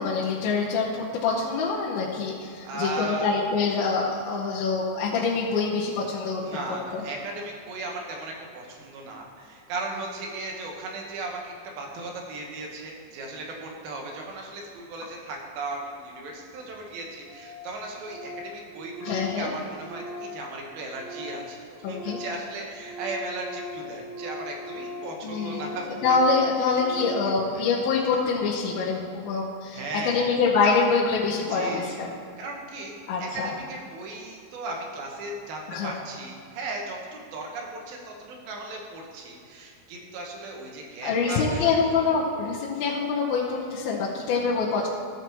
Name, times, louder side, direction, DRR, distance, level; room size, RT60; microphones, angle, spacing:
voice 1, 0.0-6.6 6.9-7.0 19.0-19.5 21.8-22.2 25.2-25.8 26.0-32.1 33.1-33.5 35.7-35.9 41.0-44.9, left 4 dB, 80° left, -6 dB, 2.7 m, -25 dB
voice 2, 2.6-3.3 6.4-26.2 27.5-27.6 29.7-30.3 31.5-41.6 41.9-42.1, right 2 dB, 75° right, 0 dB, 3.1 m, -36 dB
Organ, 16.6-16.7 16.9-17.0 17.2-17.6 17.9-21.5 21.8-27.4, left 1 dB, 50° right, 1.7 m, -39 dB
14.0 x 5.7 x 4.6 m, 2.5 s
omnidirectional pair, 4.4 m